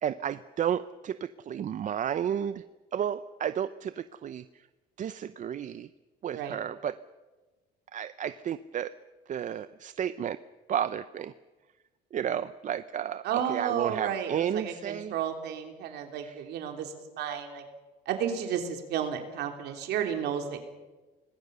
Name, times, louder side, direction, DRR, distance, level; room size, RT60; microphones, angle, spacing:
voice 1, 0.0-2.6 2.9-4.7 5.0-5.9 6.2-7.0 7.9-8.9 9.3-10.4 10.7-11.3 12.1-15.1 16.1-16.4, right 9 dB, 50° right, 13 dB, 0.7 m, -32 dB
voice 2, 13.2-17.6 18.0-20.6, right 8 dB, 80° right, 5 dB, 3.4 m, -32 dB
25.5 x 20.0 x 6.9 m, 1.2 s
cardioid pair, 110°, 17 cm